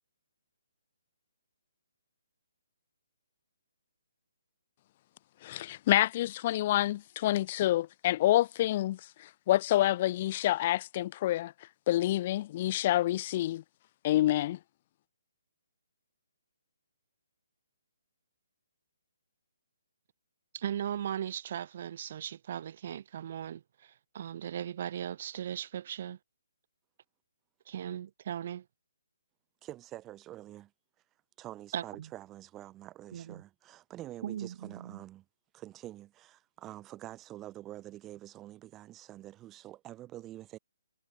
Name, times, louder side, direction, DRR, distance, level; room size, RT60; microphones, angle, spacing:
voice 1, 5.4-11.5 11.9-13.6 14.0-14.6, left 14 dB, 30° left, 0.3 m, -28 dB
voice 2, 20.5-26.2 27.7-28.6 31.7-32.1 33.1-33.4 34.2-35.0, right 10 dB, 40° right, 0.7 m, -38 dB
voice 3, 29.6-30.7 31.4-35.2 35.5-40.6, right 14 dB, 15° right, 1.3 m, -47 dB
hypercardioid pair, 170°, 0 cm